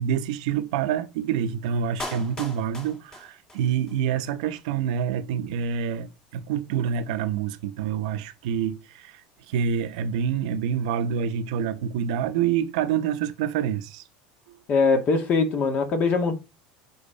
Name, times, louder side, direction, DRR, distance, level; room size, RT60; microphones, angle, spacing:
voice 1, 0.0-9.1 9.5-14.0, right 8 dB, 80° right, 1.0 m, -27 dB
Clapping, 2.0-4.0 4.2-4.3, left 1 dB, 20° left, 1.9 m, -38 dB
voice 2, 14.7-16.3, left 4 dB, 40° left, 1.8 m, -22 dB
7.3 x 3.9 x 5.2 m
supercardioid pair, 125°, 4 cm